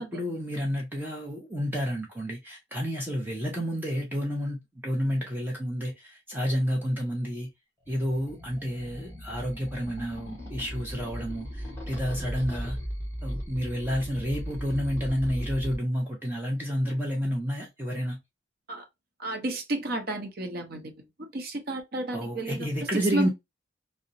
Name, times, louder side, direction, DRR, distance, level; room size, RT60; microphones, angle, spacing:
voice 1, 0.0-7.5 7.9-12.8 13.2-18.2 22.1-23.3, equal, 10° right, 0.5 m, -30 dB
sound 1, 7.9-15.8, equal, 15° left, 0.9 m, -37 dB
voice 2, 19.2-20.9 21.3-22.6 23.1-23.3, right 2 dB, 50° right, 0.6 m, -31 dB
2.8 x 2.0 x 2.5 m
head